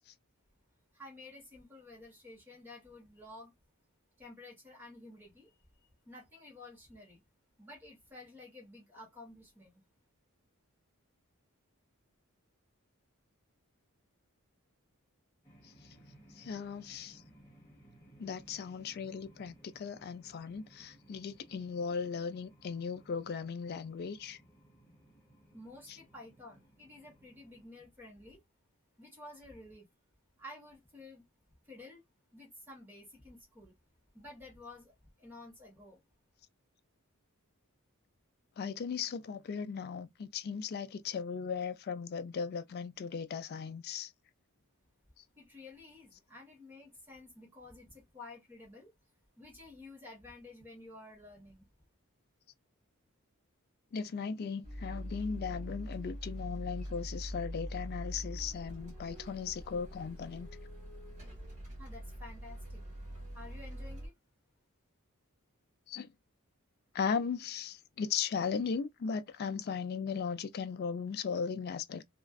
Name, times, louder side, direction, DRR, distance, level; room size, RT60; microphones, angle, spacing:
voice 1, 0.9-3.5 4.2-5.6 6.1-7.2 7.6-9.8 25.5-28.4 29.0-29.9 30.4-31.2 31.6-32.0 32.3-33.7 34.1-36.0 45.4-48.9 49.4-51.7 61.8-62.9 63.3-64.1, left 2 dB, 10° right, 1.0 m, -52 dB
sound 1, 15.4-27.7, right 1 dB, 10° left, 0.8 m, -60 dB
voice 2, 16.4-17.2 18.2-24.4 38.6-44.1 53.9-60.5 65.9-66.1 66.9-72.0, left 6 dB, 45° left, 0.3 m, -37 dB
sound 2, 54.6-64.1, equal, 35° right, 1.3 m, -43 dB
2.4 x 2.2 x 2.2 m
head